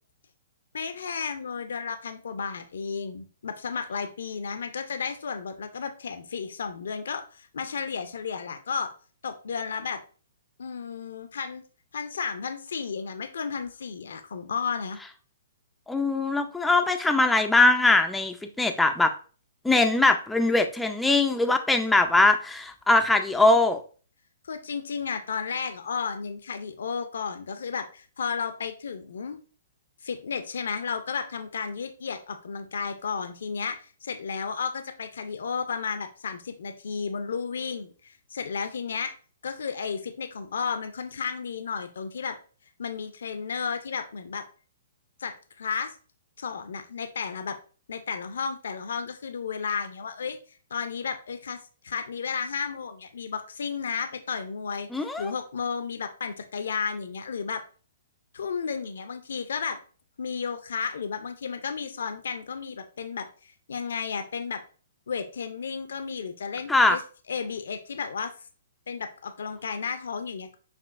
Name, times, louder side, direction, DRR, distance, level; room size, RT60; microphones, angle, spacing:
voice 1, 0.7-8.9 9.2-10.0 10.6-11.6 11.9-15.0 24.4-29.4 30.0-39.1 39.4-42.4 42.8-44.4 45.2-45.9 46.4-47.6 47.9-50.4 50.7-57.6 58.3-59.8 60.2-64.6 65.1-67.0 67.3-68.3 68.9-70.6, left 6 dB, 75° left, 8 dB, 0.5 m, -33 dB
voice 2, 15.9-19.1 19.6-23.8 54.9-55.3 66.7-67.0, left 2 dB, 5° left, 6 dB, 0.4 m, -21 dB
5.9 x 2.4 x 2.4 m, 0.38 s
hypercardioid pair, 145°, 0 cm